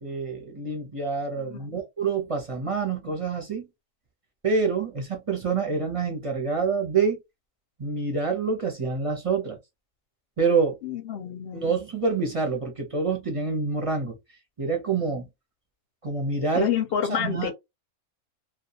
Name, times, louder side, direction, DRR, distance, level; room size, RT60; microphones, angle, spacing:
voice 1, 0.0-3.7 4.4-7.2 7.8-9.6 10.4-10.8 11.5-14.2 14.6-15.3 16.0-16.7 17.1-17.5, right 4 dB, 35° right, 0.6 m, -27 dB
voice 2, 1.4-1.8 10.8-11.7 16.5-17.5, left 8 dB, 60° left, 0.7 m, -28 dB
2.3 x 2.2 x 2.7 m
omnidirectional pair, 1.3 m